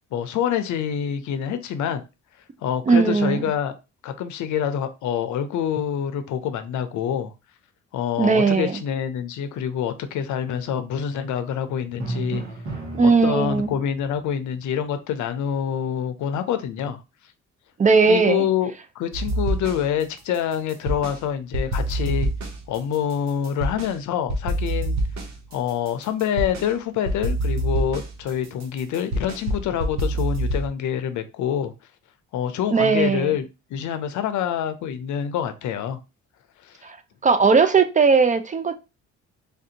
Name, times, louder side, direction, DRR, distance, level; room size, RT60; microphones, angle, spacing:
voice 1, 0.1-2.0 2.6-3.7 4.0-7.3 7.9-12.4 13.0-17.0 18.1-22.3 22.7-25.0 25.5-31.7 32.3-36.0 36.6-36.8, left 9 dB, 75° left, 0.6 m, -26 dB
voice 2, 2.9-3.5 8.2-8.8 13.0-13.8 17.8-18.5 32.7-33.3 36.8-37.0 37.2-38.7, right 4 dB, 25° right, 0.4 m, -18 dB
Drum, 12.0-14.0, right 2 dB, 85° right, 1.6 m, -32 dB
sound 1, 19.1-20.0 20.3-21.2 21.5-23.9 24.3-26.7 27.1-30.7, right 1 dB, 65° right, 0.9 m, -26 dB
3.4 x 2.5 x 2.8 m
cardioid pair, 90°, 30 cm